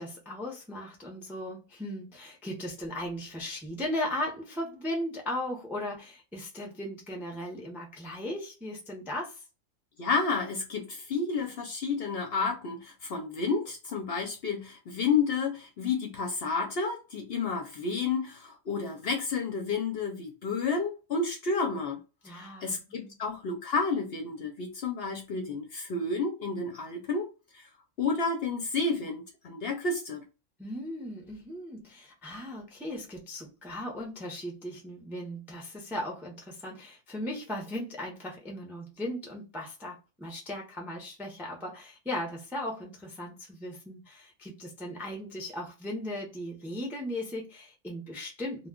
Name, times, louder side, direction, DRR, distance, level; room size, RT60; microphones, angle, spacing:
voice 1, 0.0-9.4 22.2-23.1 30.6-48.7, left 1 dB, 5° right, 0.4 m, -37 dB
voice 2, 10.0-27.3 27.5-27.7 28.0-30.2, left 4 dB, 60° left, 0.7 m, -31 dB
2.2 x 2.2 x 3.6 m
omnidirectional pair, 1.4 m